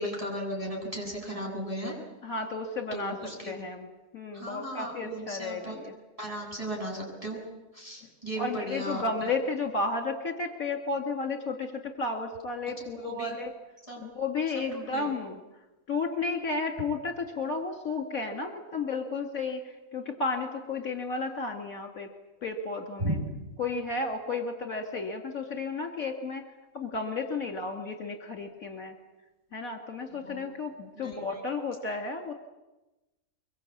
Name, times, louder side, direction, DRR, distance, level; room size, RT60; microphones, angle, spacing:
voice 1, 0.0-1.9 2.9-3.6 4.3-5.8 6.2-7.4 7.7-9.0 12.8-13.3 13.9-14.0 14.7-15.1 23.0-23.2 30.2-30.5 31.0-31.4, equal, 20° right, -1 dB, 7.8 m, -36 dB
voice 2, 2.2-3.2 3.4-3.9 4.1-5.9 8.4-13.5 14.0-15.4 15.9-22.1 22.4-23.2 23.6-26.4 26.7-29.0 29.5-32.3, left 3 dB, 60° left, 4 dB, 2.4 m, -33 dB
23.5 x 23.0 x 8.5 m, 1.0 s
omnidirectional pair, 1.7 m